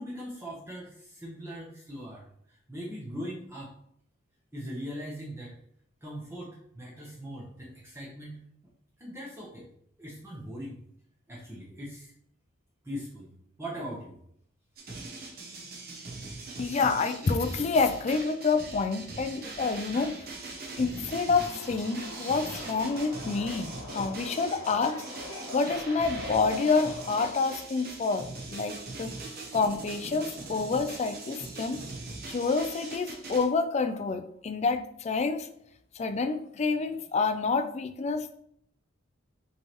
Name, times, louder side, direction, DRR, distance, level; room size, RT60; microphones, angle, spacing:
voice 1, 0.0-3.7 4.5-5.5 6.0-8.4 9.0-9.7 10.0-10.8 11.3-12.1 12.8-13.3 13.6-14.2, equal, 10° right, -5 dB, 0.8 m, -40 dB
sound 1, 14.8-33.4, right 3 dB, 50° right, 0.9 m, -41 dB
voice 2, 16.6-20.2 20.8-25.0 25.5-29.1 29.5-31.8 32.3-35.5 35.9-38.4, left 4 dB, 35° left, 9 dB, 0.3 m, -28 dB
Subway metro underground, 21.3-27.3, left 2 dB, 80° left, 1.0 m, -43 dB
5.4 x 3.3 x 2.9 m, 0.69 s
head